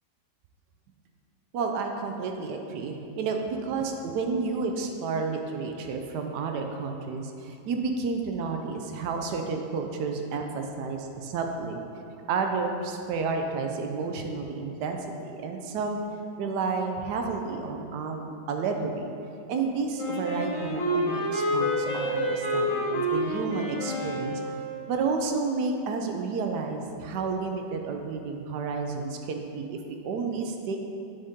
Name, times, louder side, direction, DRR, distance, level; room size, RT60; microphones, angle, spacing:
voice 1, 1.5-11.8 12.3-16.0 16.4-19.1 19.5-24.6 24.9-29.8 30.0-30.8, right 4 dB, 70° right, 4 dB, 1.0 m, -31 dB
Wind instrument woodwind instrument, 20.0-24.7, equal, 80° left, 1.9 m, -28 dB
8.7 x 4.1 x 3.6 m, 2.6 s
omnidirectional pair, 2.1 m